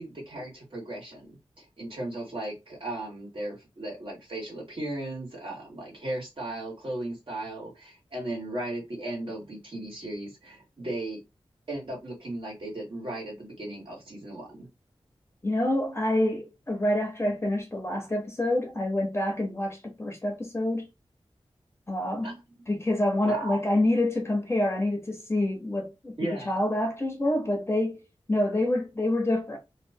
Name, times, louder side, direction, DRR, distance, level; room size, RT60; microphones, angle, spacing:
voice 1, 0.0-1.4 1.8-11.2 11.7-14.7 22.2-22.4 23.2-23.6 26.2-26.5, right 1 dB, 60° right, 1.8 m, -36 dB
voice 2, 15.4-20.9 21.9-22.3 22.7-28.0 28.3-29.6, left 1 dB, 25° left, 0.9 m, -27 dB
3.2 x 2.6 x 2.7 m
wide cardioid pair, 85°, 10 cm